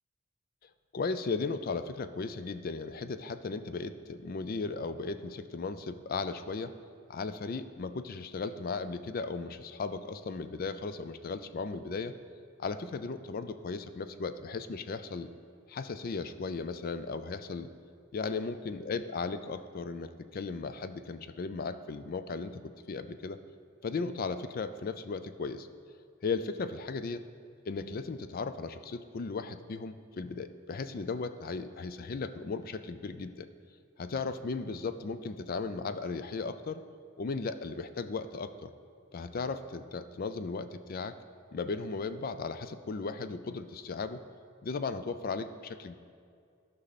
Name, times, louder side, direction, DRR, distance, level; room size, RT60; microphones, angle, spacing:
voice 1, 0.9-6.7 7.1-12.2 12.6-15.3 15.7-17.7 18.1-23.4 23.8-25.7 26.2-27.2 27.7-33.5 34.0-36.8 37.2-38.7 39.1-41.2 41.5-44.2 44.6-46.0, left 4 dB, 45° left, 11 dB, 0.4 m, -36 dB
13.0 x 5.6 x 4.1 m, 2.3 s
head